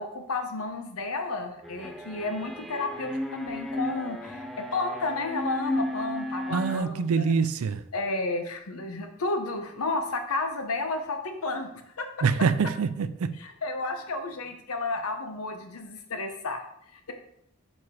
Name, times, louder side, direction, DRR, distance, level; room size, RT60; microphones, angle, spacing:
voice 1, 0.0-7.4 7.9-12.1 13.4-16.6 16.9-17.1, left 3 dB, 85° left, 0.9 m, -32 dB
sound 1, 1.6-6.8, left 1 dB, ahead, 0.5 m, -34 dB
voice 2, 6.5-7.8 12.2-13.4, right 5 dB, 80° right, 0.4 m, -25 dB
5.3 x 4.8 x 4.8 m
head